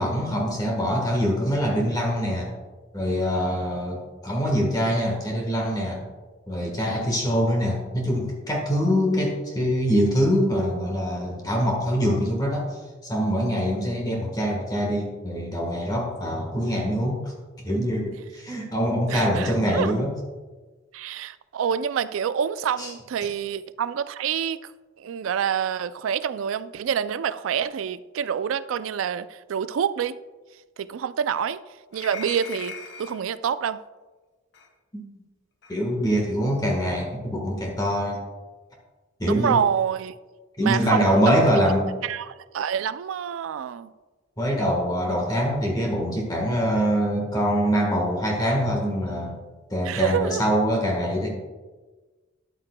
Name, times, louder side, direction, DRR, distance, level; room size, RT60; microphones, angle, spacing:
voice 1, 0.0-2.5 2.9-6.0 6.5-12.7 13.0-17.3 17.6-20.1 22.8-22.9 34.9-35.0 35.7-38.2 39.2-39.6 40.6-41.9 44.4-49.4 49.7-51.3, equal, 20° left, 1.3 m, -24 dB
voice 2, 19.1-19.9 20.9-24.7 25.0-30.2 30.8-31.6 31.9-33.8 39.2-40.1 40.6-41.2 42.0-43.9 49.8-50.5, right 8 dB, 85° right, 0.3 m, -27 dB
sound 1, 31.9-33.2 34.5-34.7 35.6-35.8, left 6 dB, 60° left, 0.9 m, -39 dB
11.0 x 8.5 x 2.2 m
head